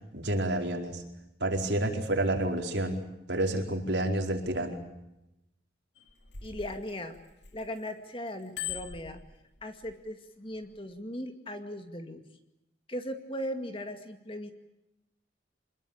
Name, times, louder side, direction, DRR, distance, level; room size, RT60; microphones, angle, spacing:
voice 1, 0.1-1.0 1.4-3.0 3.3-4.8, right 1 dB, 70° right, 4 dB, 4.7 m, -29 dB
Bicycle bell, 6.0-7.9 8.3-9.9 10.6-10.8, left 9 dB, 70° left, 2.5 m, -41 dB
voice 2, 6.4-7.2 7.5-9.2 9.6-12.2 12.9-14.5, left 1 dB, 30° left, 7 dB, 2.2 m, -38 dB
27.5 x 21.0 x 8.7 m, 0.89 s
head